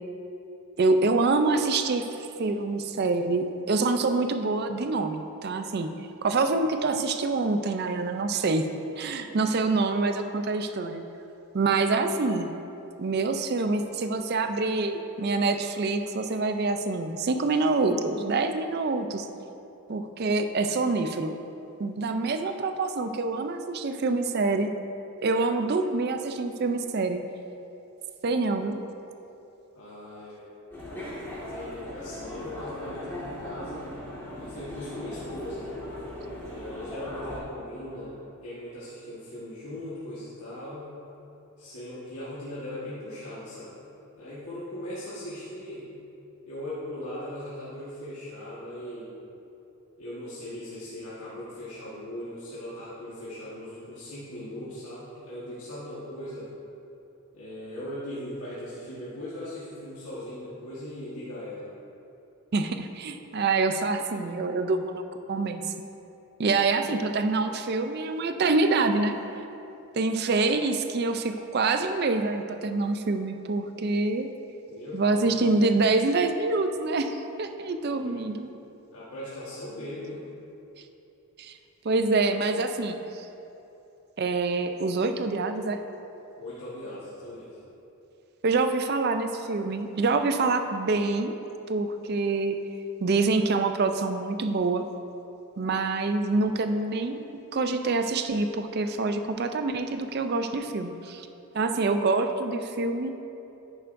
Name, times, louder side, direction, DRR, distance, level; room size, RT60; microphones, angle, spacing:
voice 1, 0.8-5.9 6.2-8.7 9.0-11.0 11.5-12.5 13.0-19.3 19.9-21.3 21.8-24.7 25.2-27.2 28.2-28.8 62.5-65.0 65.3-65.6 66.4-69.2 69.9-74.3 74.9-78.5 81.4-81.5 81.8-83.3 84.2-85.8 88.4-91.4 91.7-92.6 93.0-94.8 95.6-97.2 97.5-101.3 101.5-103.1, right 3 dB, 45° right, 8 dB, 0.4 m, -26 dB
voice 2, 29.7-30.5 31.0-33.9 34.4-35.7 36.4-38.1 38.4-40.9 41.6-43.8 44.2-45.9 46.5-49.1 50.0-56.5 57.3-61.7 74.7-75.4 77.8-78.2 78.9-80.2 86.4-87.6, left 1 dB, 80° left, -10 dB, 1.5 m, -39 dB
sound 1, 30.7-37.4, left 1 dB, 10° left, 1.8 m, -38 dB
10.0 x 9.0 x 2.6 m, 2.9 s
head